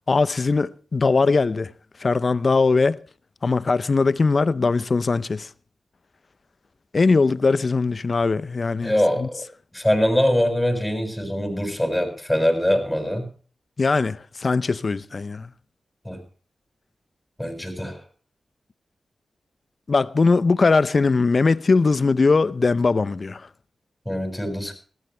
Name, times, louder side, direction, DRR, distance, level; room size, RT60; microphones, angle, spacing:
voice 1, 0.1-1.7 2.0-3.0 3.4-5.5 6.9-8.9 9.2-9.3 13.8-15.5 19.9-23.5, left 4 dB, 55° left, 0.6 m, -20 dB
voice 2, 8.8-9.5 9.7-13.3 16.0-16.2 17.4-18.0 24.0-24.7, equal, 10° left, 6.7 m, -23 dB
19.0 x 15.0 x 3.4 m
cardioid pair, 50°, 0 cm